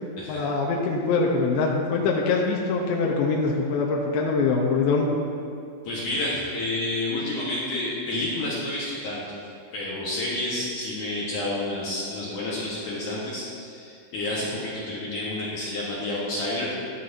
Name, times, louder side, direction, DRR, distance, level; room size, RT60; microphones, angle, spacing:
voice 1, 0.3-5.1, left 4 dB, 90° left, -1 dB, 3.1 m, -23 dB
voice 2, 5.8-9.3 9.7-16.7, left 1 dB, 65° left, -7 dB, 2.2 m, -29 dB
12.5 x 11.0 x 2.7 m, 2.5 s
omnidirectional pair, 5.1 m